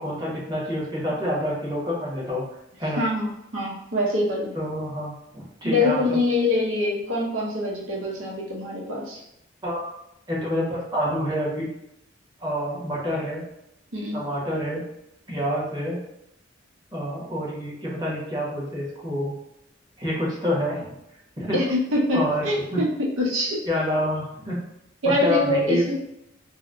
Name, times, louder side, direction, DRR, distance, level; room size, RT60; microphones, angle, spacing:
voice 1, 0.0-2.4 2.8-3.0 4.5-6.2 9.6-9.9 10.3-11.7 12.4-13.4 14.1-14.8 15.3-16.0 16.9-19.4 20.0-20.9 21.4-21.6 22.1-22.8 23.7-24.6 25.0-25.9, equal, 20° right, -6 dB, 1.0 m, -27 dB
voice 2, 2.9-4.6 5.6-9.2 13.9-14.2 21.5-22.2 22.4-22.9 23.2-23.6 25.0-25.9, left 2 dB, 85° right, -3 dB, 0.7 m, -24 dB
3.9 x 2.1 x 2.5 m, 0.81 s
head